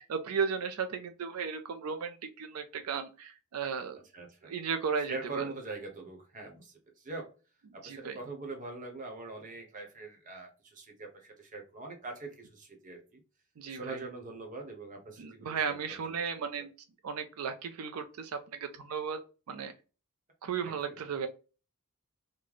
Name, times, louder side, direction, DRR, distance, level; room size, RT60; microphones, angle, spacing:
voice 1, 0.1-4.0 4.4-5.5 7.8-8.2 13.6-14.0 15.2-16.7 17.0-19.2 19.5-19.7 20.4-21.3, right 6 dB, 85° right, 7 dB, 0.4 m, -35 dB
voice 2, 4.1-4.5 5.1-7.3 7.7-13.2 13.7-15.8, right 3 dB, 35° right, 3 dB, 0.9 m, -43 dB
3.1 x 2.1 x 3.8 m, 0.33 s
head